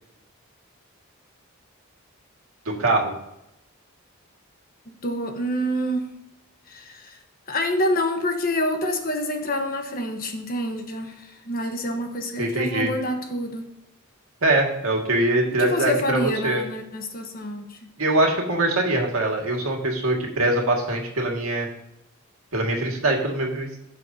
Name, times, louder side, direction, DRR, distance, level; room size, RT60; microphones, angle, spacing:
voice 1, 2.7-3.1 12.4-12.9 14.4-16.6 18.0-21.7 22.5-23.7, right 2 dB, 70° right, 1 dB, 2.0 m, -23 dB
voice 2, 4.9-6.1 6.7-7.2 7.5-13.6 15.5-17.8, equal, 40° left, 4 dB, 1.2 m, -27 dB
16.0 x 6.5 x 2.8 m, 0.86 s
head